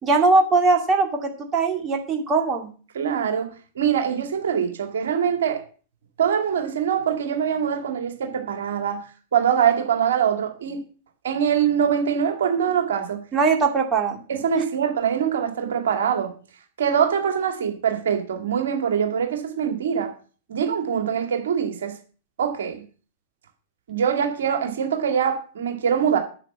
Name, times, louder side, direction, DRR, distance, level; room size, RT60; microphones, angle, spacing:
voice 1, 0.0-2.7 13.3-14.2, right 3 dB, 25° right, 2.4 m, -20 dB
voice 2, 2.9-3.5 3.8-5.6 6.2-9.0 9.3-10.8 11.2-13.2 14.3-16.3 16.8-20.1 20.5-21.9 22.4-22.8 23.9-26.2, right 8 dB, 65° right, 2.4 m, -23 dB
9.1 x 7.2 x 7.3 m
figure-of-eight pair, 100°, 0 cm